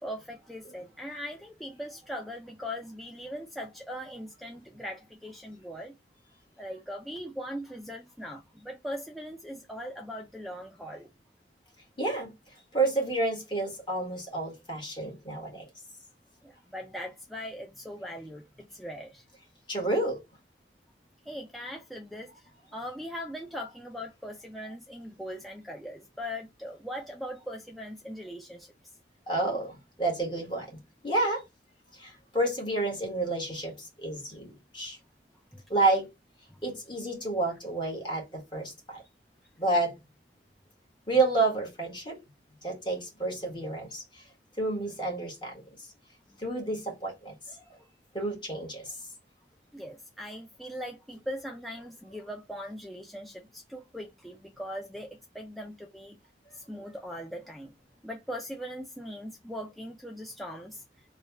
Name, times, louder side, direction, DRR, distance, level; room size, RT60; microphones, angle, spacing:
voice 1, 0.0-5.9 6.6-11.1 16.4-19.2 21.3-28.7 35.5-35.6 49.7-56.2 56.5-57.7 58.0-60.8, equal, ahead, 0.3 m, -40 dB
voice 2, 12.0-12.3 12.7-15.6 19.7-20.2 29.3-31.4 31.9-35.0 35.7-36.1 36.6-39.0 39.6-39.9 41.1-42.2 42.6-44.3 44.6-45.9 46.4-47.6 48.1-49.0, right 2 dB, 25° left, 1.5 m, -30 dB
3.3 x 2.3 x 4.1 m
head